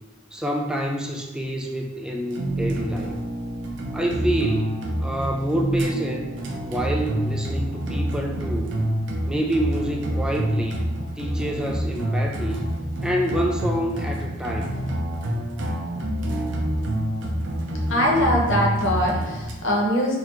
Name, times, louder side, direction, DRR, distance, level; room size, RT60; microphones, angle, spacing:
voice 1, 0.3-3.2 3.9-6.4 6.7-8.7 9.3-10.9 11.2-12.7 13.0-14.8, right 1 dB, 5° right, 1 dB, 0.3 m, -27 dB
sound 1, 2.3-19.5, equal, 65° right, 0.6 m, -27 dB
voice 2, 17.9-20.2, equal, 75° left, -2 dB, 0.9 m, -22 dB
3.9 x 2.8 x 3.0 m, 1.1 s
head